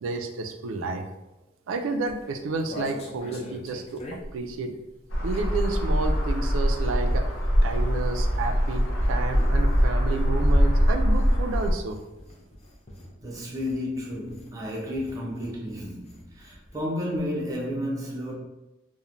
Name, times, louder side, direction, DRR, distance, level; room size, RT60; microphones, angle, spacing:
voice 1, 0.0-1.0 1.7-4.0 4.3-4.7 5.2-7.3 7.6-12.0, right 3 dB, 80° right, 0.3 m, -31 dB
sound 1, 2.0-5.7 5.9-16.9 17.1-17.2 17.5-17.8, left 1 dB, 30° left, 0.4 m, -45 dB
sound 2, 5.1-11.7, equal, 75° left, 0.6 m, -23 dB
voice 2, 13.2-18.3, left 1 dB, 20° right, 0.5 m, -32 dB
3.0 x 2.1 x 2.4 m
head